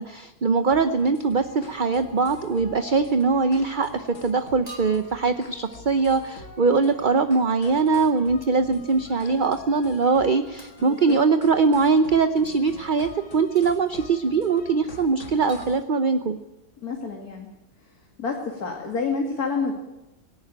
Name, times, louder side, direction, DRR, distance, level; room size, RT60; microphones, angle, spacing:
voice 1, 0.0-16.4, right 4 dB, 40° right, 9 dB, 0.7 m, -22 dB
sound 1, 0.7-15.8, left 3 dB, 45° left, 2.0 m, -46 dB
sound 2, 4.7-5.3 8.4-8.6 10.6-10.8 12.5-12.6 13.5-14.1 15.5-16.3, right 3 dB, 20° right, 3.5 m, -46 dB
voice 2, 10.8-11.2 16.8-17.5 18.2-19.7, left 4 dB, 65° left, 1 dB, 2.8 m, -28 dB
18.5 x 17.5 x 8.9 m, 0.96 s
omnidirectional pair, 1.8 m